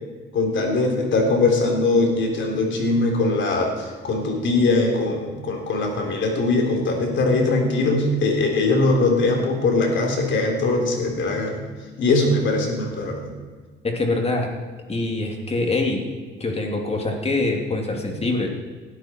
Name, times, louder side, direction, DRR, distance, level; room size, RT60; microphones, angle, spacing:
voice 1, 0.3-11.6 12.0-13.3, left 2 dB, 70° left, 2 dB, 3.8 m, -21 dB
voice 2, 13.8-14.5 14.9-16.1 16.4-18.5, left 2 dB, 30° left, 2 dB, 3.0 m, -24 dB
19.5 x 12.5 x 4.6 m, 1.4 s
cardioid pair, 90°, 20 cm